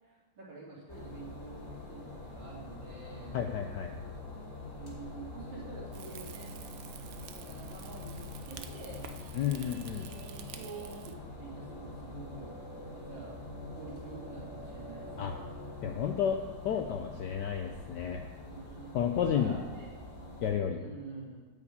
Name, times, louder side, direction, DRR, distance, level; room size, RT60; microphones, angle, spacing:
voice 1, 0.0-3.4 4.8-6.5 7.3-8.2 8.5-9.0 9.8-12.5 12.8-13.4 13.7-15.3 18.5-19.9 20.8-21.5, right 4 dB, 60° right, -6 dB, 3.6 m, -47 dB
sound 1, 0.9-20.5, left 2 dB, 30° left, 2.5 m, -45 dB
voice 2, 3.3-3.9 9.3-10.1 15.2-15.4 15.8-16.4 16.6-18.2 18.9-19.6 20.4-20.8, left 8 dB, 70° left, 5 dB, 1.0 m, -31 dB
Rain / Fire, 5.9-11.1, right 8 dB, 80° right, 0.7 m, -49 dB
9.6 x 5.3 x 8.2 m, 1.3 s
omnidirectional pair, 2.3 m